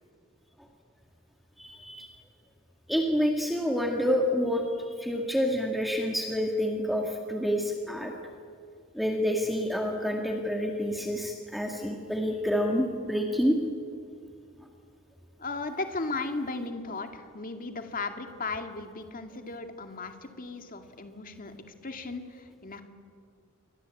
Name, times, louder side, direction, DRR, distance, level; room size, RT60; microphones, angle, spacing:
voice 1, 1.6-2.2 2.9-8.1 8.9-13.6, equal, ahead, 1 dB, 2.1 m, -28 dB
voice 2, 15.4-21.5 21.8-22.8, left 3 dB, 45° left, 6 dB, 2.2 m, -36 dB
28.5 x 23.0 x 8.5 m, 2.2 s
head